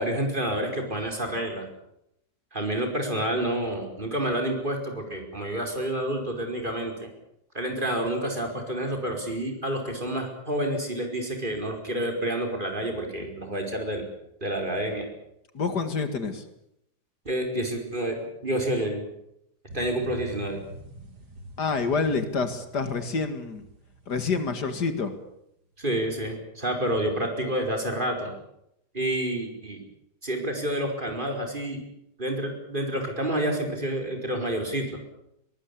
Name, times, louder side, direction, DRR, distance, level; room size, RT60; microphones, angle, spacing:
voice 1, 0.0-1.7 2.5-7.1 7.5-14.1 14.4-15.1 17.2-19.1 19.7-20.6 25.8-28.3 28.9-29.8 30.2-31.8 32.2-34.9, right 1 dB, 30° right, 3 dB, 5.2 m, -29 dB
voice 2, 15.5-16.4 21.6-23.6 24.1-25.1, left 4 dB, 75° left, 9 dB, 2.6 m, -27 dB
sound 1, 19.7-25.3 25.7-25.8, left 1 dB, 70° right, 3.1 m, -45 dB
22.5 x 20.0 x 8.6 m, 0.78 s
omnidirectional pair, 1.8 m